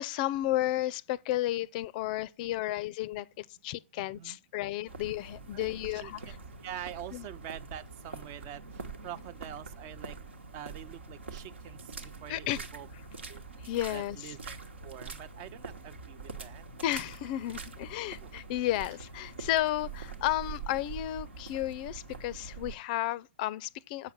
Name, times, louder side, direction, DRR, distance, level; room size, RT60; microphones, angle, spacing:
voice 1, 0.0-6.4 7.1-7.3 12.3-12.6 13.6-14.3 16.8-24.1, left 14 dB, 45° left, 0.4 m, -33 dB
voice 2, 4.0-4.4 5.5-6.3 6.6-8.6 9.0-10.2 10.5-12.9 13.3-13.4 13.9-14.6 14.8-16.6 18.2-18.3, right 11 dB, 40° right, 0.5 m, -45 dB
sound 1, 4.9-22.7, right 4 dB, 80° right, 1.2 m, -44 dB
7.3 x 5.8 x 7.2 m
figure-of-eight pair, 110°, 6 cm